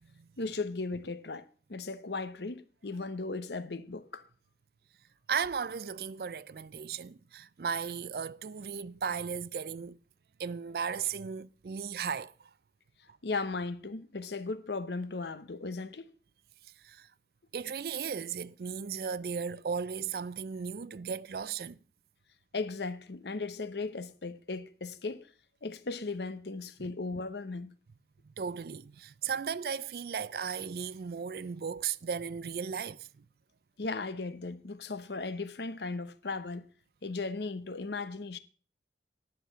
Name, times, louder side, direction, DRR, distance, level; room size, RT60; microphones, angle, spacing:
voice 1, 0.4-4.3 13.2-16.1 22.5-25.3 25.6-27.7 33.8-36.7 37.0-38.4, left 3 dB, 75° left, 0.9 m, -37 dB
voice 2, 5.3-10.0 10.4-12.5 16.8-17.1 17.5-21.8 28.2-33.2, right 6 dB, 60° right, 0.4 m, -36 dB
10.5 x 6.6 x 7.5 m
head